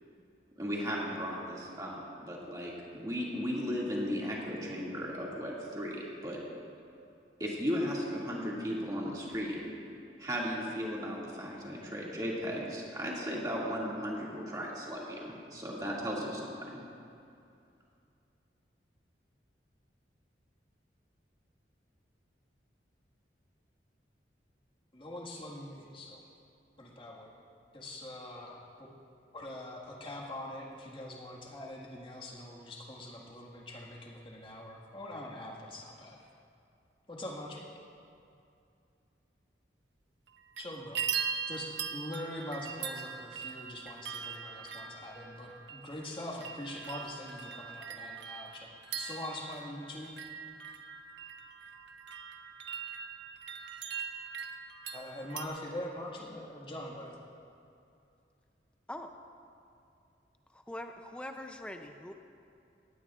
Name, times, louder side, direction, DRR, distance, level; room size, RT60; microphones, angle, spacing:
voice 1, 0.6-6.4 7.4-9.6 10.2-16.8, equal, 20° right, -5 dB, 2.2 m, -36 dB
voice 2, 24.9-26.2 26.8-27.3 27.7-28.9 29.3-36.2 37.1-37.6 40.6-41.0 41.5-50.1 54.9-57.2, left 1 dB, 30° left, -3 dB, 1.7 m, -43 dB
sound 1, 40.3-40.6 40.9-55.4, right 7 dB, 80° right, 0.7 m, -41 dB
voice 3, 60.7-62.1, left 1 dB, 5° left, 5 dB, 0.5 m, -42 dB
18.0 x 16.5 x 2.5 m, 2.5 s
head